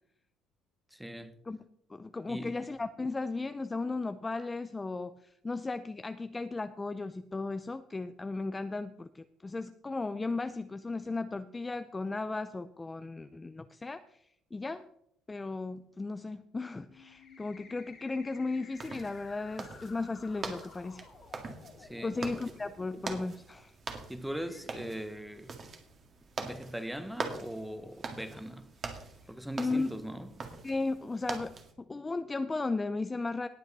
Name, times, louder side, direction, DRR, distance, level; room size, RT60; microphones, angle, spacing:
voice 1, 0.9-1.4 2.3-2.6 21.8-22.2 24.1-25.5 26.4-28.7 29.3-30.3, right 1 dB, 5° right, 1.0 m, -40 dB
voice 2, 1.9-14.2 14.5-14.9 15.3-21.0 22.0-23.7 29.6-30.0 30.6-31.6 31.9-33.5, left 3 dB, 15° left, 0.5 m, -35 dB
sound 1, 16.9-22.9 23.7-23.8 24.3-24.7, left 6 dB, 45° left, 2.3 m, -54 dB
sound 2, 18.8-31.7, right 4 dB, 35° right, 2.0 m, -43 dB
19.0 x 7.7 x 4.0 m
cardioid pair, 130°, 0 cm